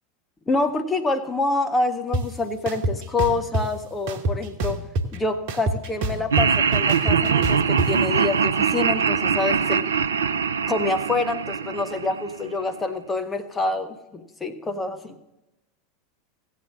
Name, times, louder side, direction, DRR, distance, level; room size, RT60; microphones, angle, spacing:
voice 1, 0.5-4.8 5.1-9.8 10.7-15.2, left 3 dB, 15° left, 8 dB, 0.9 m, -26 dB
sound 1, 2.1-2.2 2.7-3.6 4.1-5.2 5.5-7.9, right 2 dB, 50° right, 1.2 m, -25 dB
Laughter, 6.3-12.5, right 6 dB, 70° right, 0.5 m, -22 dB
16.5 x 7.5 x 6.2 m, 0.97 s
figure-of-eight pair, 85°, 0 cm